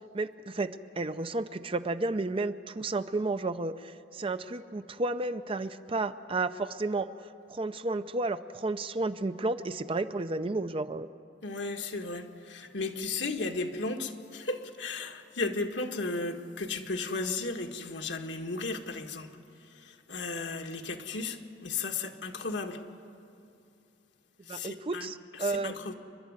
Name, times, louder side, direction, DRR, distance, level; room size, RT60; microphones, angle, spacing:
voice 1, 0.1-11.1 24.5-25.7, right 2 dB, 30° right, 11 dB, 0.6 m, -32 dB
voice 2, 11.4-19.3 19.8-22.8 24.5-25.1 25.4-25.9, left 3 dB, 75° left, 3 dB, 1.6 m, -35 dB
28.5 x 11.5 x 9.6 m, 2.7 s
head